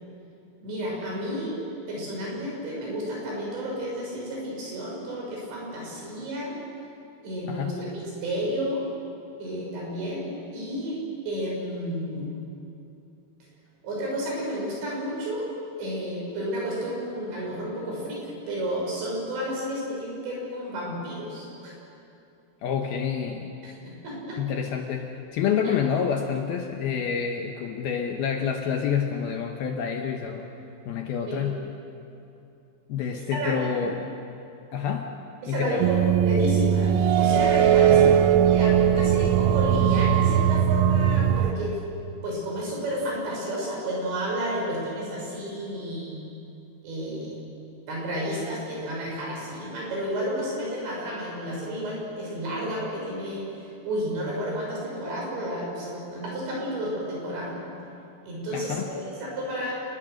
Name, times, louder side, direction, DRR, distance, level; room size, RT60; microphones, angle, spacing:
voice 1, 0.6-1.6 1.9-6.5 7.2-8.9 9.4-11.0 11.3-12.3 13.8-15.5 15.8-21.7 23.6-24.4 31.3-31.5 33.1-33.7 35.4-41.8 42.2-46.2 46.8-47.4 47.9-57.6 58.2-59.7, equal, 70° right, -3 dB, 8.7 m, -31 dB
voice 2, 22.6-23.5 24.4-30.5 30.9-31.7 32.9-34.1 34.7-35.2 35.4-35.9 37.9-38.1 58.5-58.9, left 7 dB, 70° left, 3 dB, 2.5 m, -28 dB
sound 1, 35.8-41.5, right 9 dB, 85° right, 3.2 m, -20 dB
29.0 x 21.0 x 6.6 m, 2.7 s
omnidirectional pair, 5.4 m